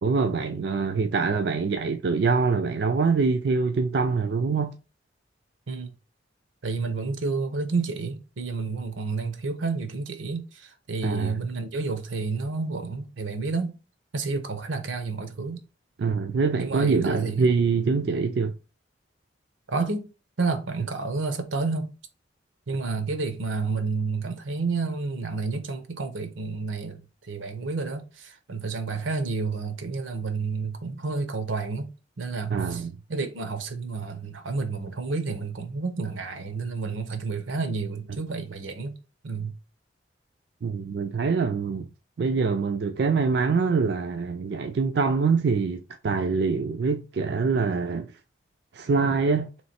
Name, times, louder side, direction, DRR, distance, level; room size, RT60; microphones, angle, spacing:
voice 1, 0.0-4.7 11.0-11.4 16.0-18.5 32.5-33.0 40.6-41.9 42.2-48.1 48.7-49.5, right 4 dB, 60° right, 0.4 m, -24 dB
voice 2, 6.6-13.7 14.1-15.6 16.6-17.5 19.7-20.1 20.4-21.9 22.7-31.9 32.2-32.8 33.1-39.0 39.2-39.5, right 4 dB, 90° right, 0.7 m, -30 dB
3.2 x 3.1 x 4.1 m
head